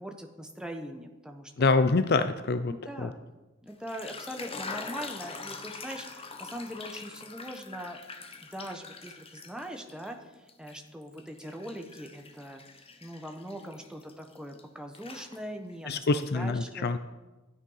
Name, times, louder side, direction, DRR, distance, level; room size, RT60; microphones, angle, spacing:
voice 1, 0.0-1.7 2.7-3.2 3.6-8.0 8.4-12.6 13.0-17.0, equal, 5° right, 3 dB, 1.2 m, -41 dB
voice 2, 1.6-2.7 3.0-3.1 15.9-17.0, left 3 dB, 50° left, 11 dB, 0.6 m, -25 dB
sound 1, 3.7-10.1 10.5-14.6 14.9-15.8, left 4 dB, 30° left, 1.1 m, -44 dB
13.0 x 9.7 x 5.7 m, 1.1 s
head